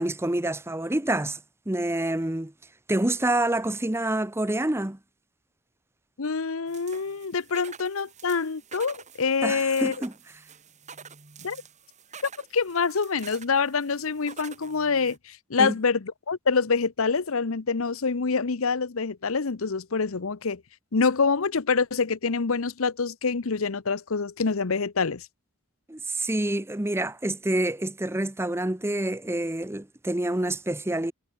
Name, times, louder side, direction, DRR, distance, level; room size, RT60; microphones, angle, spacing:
voice 1, 0.0-1.4 1.7-2.5 2.9-5.0 9.4-10.1 15.6-15.7 25.9-31.1, right 1 dB, 10° right, 0.8 m, -27 dB
voice 2, 6.2-9.9 11.4-11.6 12.5-20.6 20.9-25.3, left 5 dB, 75° left, 0.8 m, -26 dB
sound 1, 6.7-15.2, right 6 dB, 35° right, 3.0 m, -47 dB
head